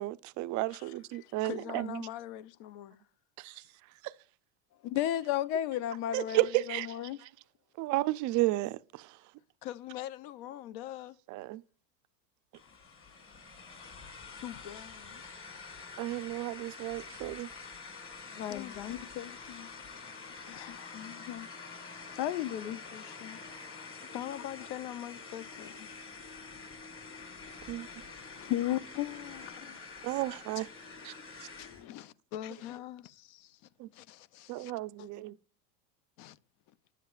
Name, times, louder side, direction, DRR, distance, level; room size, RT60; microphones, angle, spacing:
voice 1, 0.0-2.0 3.4-3.5 4.0-4.1 6.1-6.9 7.8-9.1 11.3-11.6 16.0-17.5 27.7-27.9 30.0-30.7 31.0-31.2 33.8-33.9 34.5-35.3, right 18 dB, 40° right, 0.4 m, -32 dB
voice 2, 1.4-3.0 9.6-11.2 14.4-15.2 17.6-17.7 18.2-18.8 20.4-21.2 24.1-25.9 29.4-29.6 31.6-33.6 33.9-34.7 35.0-35.2 36.2-36.4, left 12 dB, 50° left, 0.6 m, -43 dB
voice 3, 4.8-7.2 18.3-19.7 20.5-21.5 22.2-23.4 27.5-27.6 28.4-29.8 31.6-31.7, left 12 dB, 85° left, 0.8 m, -35 dB
sound 1, 12.5-31.9, left 4 dB, 25° left, 2.5 m, -47 dB
10.5 x 7.5 x 2.3 m
supercardioid pair, 105°, 50 cm